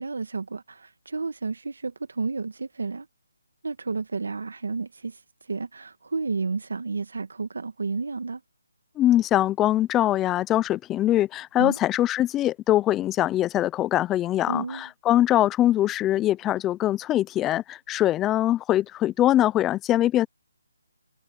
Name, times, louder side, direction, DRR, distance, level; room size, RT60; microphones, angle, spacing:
voice 1, 0.0-3.1 3.6-8.4 11.6-11.8 14.5-14.9, right 4 dB, 80° right, 1.5 m, -31 dB
voice 2, 9.0-20.3, left 13 dB, 10° left, 0.4 m, -22 dB
hypercardioid pair, 160°, 0 cm